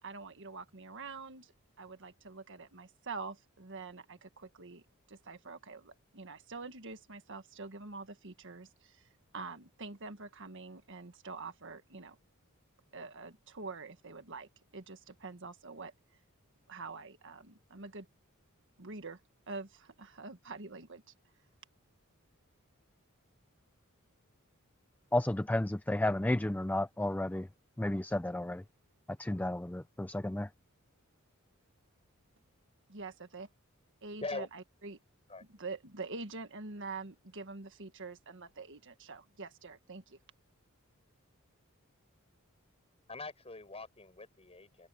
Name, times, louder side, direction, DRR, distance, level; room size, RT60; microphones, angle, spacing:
voice 1, 0.0-1.5 1.8-4.8 5.1-12.2 12.9-15.9 16.7-18.1 18.8-19.2 19.5-21.0 32.9-33.5 34.0-35.0 35.6-40.2, right 3 dB, 60° right, 1.6 m, -45 dB
voice 2, 25.1-27.5 27.8-28.6 29.2-30.5, left 1 dB, 10° left, 0.4 m, -32 dB
voice 3, 43.1-44.9, left 3 dB, 30° left, 5.9 m, -42 dB
head